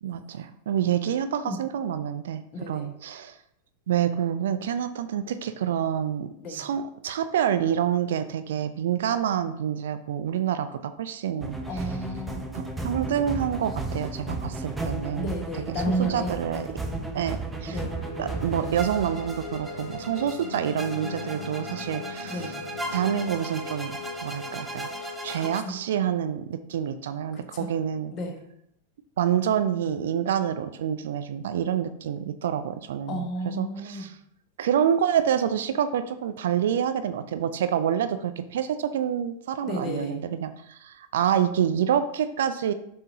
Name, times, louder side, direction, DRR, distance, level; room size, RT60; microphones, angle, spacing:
voice 1, 0.0-3.4 3.9-11.8 12.5-15.3 15.7-16.7 17.1-17.8 18.2-22.5 22.9-24.9 25.2-28.1 29.2-34.2 34.6-42.7, right 9 dB, 60° right, 11 dB, 0.4 m, -27 dB
voice 2, 2.5-2.9 6.4-6.6 11.7-12.5 15.1-16.3 17.7-18.0 22.3-22.6 25.4-25.7 27.3-27.7 28.1-28.4 33.1-34.1 39.6-40.2, equal, 30° left, 2 dB, 1.4 m, -32 dB
sound 1, 11.4-25.6, right 2 dB, 10° right, 0.8 m, -35 dB
sound 2, 17.7-26.2, left 4 dB, 70° left, 1.0 m, -39 dB
7.0 x 5.6 x 2.8 m, 0.74 s
figure-of-eight pair, 90°, 0 cm